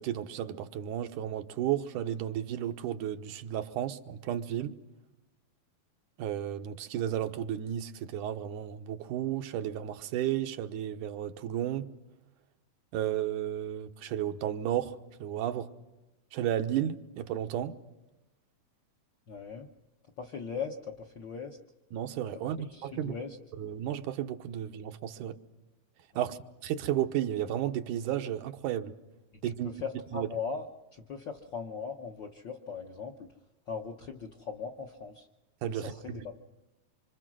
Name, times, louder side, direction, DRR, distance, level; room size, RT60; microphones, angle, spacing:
voice 1, 0.0-4.7 6.2-11.9 12.9-15.7 16.3-17.8 21.9-23.1 23.6-25.4 26.2-28.9 29.4-29.7 30.1-30.3 35.6-36.4, right 11 dB, 85° right, 2.5 m, -33 dB
voice 2, 19.3-19.7 20.2-21.6 22.6-23.4 26.1-26.3 29.6-30.7 30.9-33.3 33.7-35.3 35.7-36.4, left 5 dB, 60° left, 1.2 m, -39 dB
25.5 x 25.0 x 6.2 m
omnidirectional pair, 3.5 m